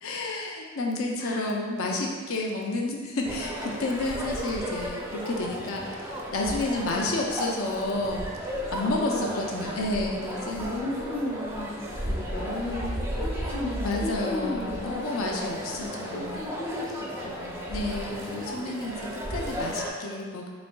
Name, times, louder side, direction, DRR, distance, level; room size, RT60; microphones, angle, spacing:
voice 1, 0.0-10.7 13.8-16.4 17.7-20.5, left 2 dB, 85° left, 0 dB, 0.5 m, -30 dB
voice 2, 1.2-1.5 8.8-10.0 10.5-15.4 15.7-15.8 16.1-17.6, left 1 dB, 45° left, -6 dB, 0.7 m, -35 dB
sound 1, 3.2-19.9, equal, 10° right, 0.4 m, -34 dB
4.1 x 3.3 x 2.2 m, 1.6 s
head